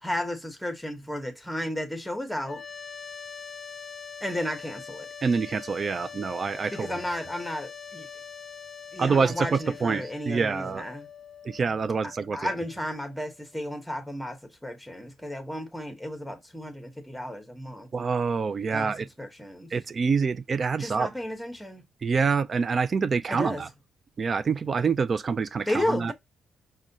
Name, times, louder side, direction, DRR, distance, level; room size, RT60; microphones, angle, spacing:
voice 1, 0.0-2.6 4.2-5.1 6.7-8.1 8.9-11.1 12.3-17.9 18.7-19.7 20.8-21.8 23.3-23.7 25.7-26.1, left 1 dB, ahead, 0.9 m, -33 dB
sound 1, 2.4-13.5, left 6 dB, 50° left, 0.4 m, -43 dB
voice 2, 5.2-6.9 9.0-10.8 11.4-12.6 17.9-19.1 19.7-21.1 22.0-23.7 24.2-26.1, right 5 dB, 40° right, 0.3 m, -26 dB
4.7 x 2.2 x 2.7 m
cardioid pair, 90°, 0 cm